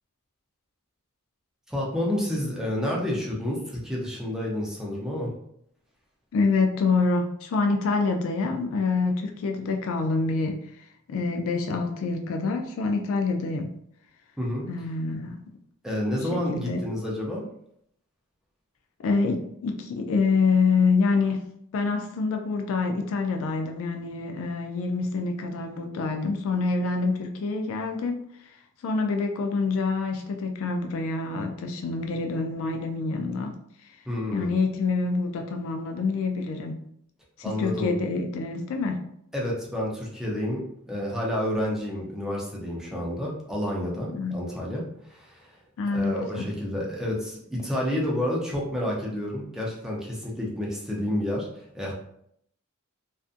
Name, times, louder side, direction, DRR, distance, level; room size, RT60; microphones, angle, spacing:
voice 1, 1.7-5.3 14.4-14.6 15.8-17.4 34.1-34.5 37.4-38.0 39.3-44.8 45.1-45.5 45.9-51.9, left 1 dB, ahead, 0.5 m, -29 dB
voice 2, 6.3-10.6 11.1-13.7 14.7-15.4 16.3-16.8 19.0-28.2 28.8-33.5 34.3-36.8 37.4-39.1 44.1-44.4 45.8-46.5, left 4 dB, 65° left, 0.3 m, -26 dB
2.5 x 2.4 x 2.4 m
head